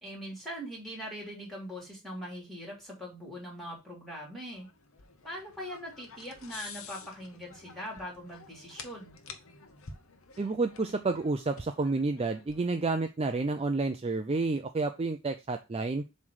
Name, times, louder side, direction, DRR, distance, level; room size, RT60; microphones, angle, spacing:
voice 1, 0.0-4.7 5.2-9.2, equal, ahead, -3 dB, 3.1 m, -41 dB
sound 1, 4.5-13.1, left 5 dB, 70° left, 1.0 m, -50 dB
voice 2, 10.4-16.0, right 3 dB, 25° right, 7 dB, 0.4 m, -30 dB
7.2 x 3.3 x 6.2 m, 0.28 s
head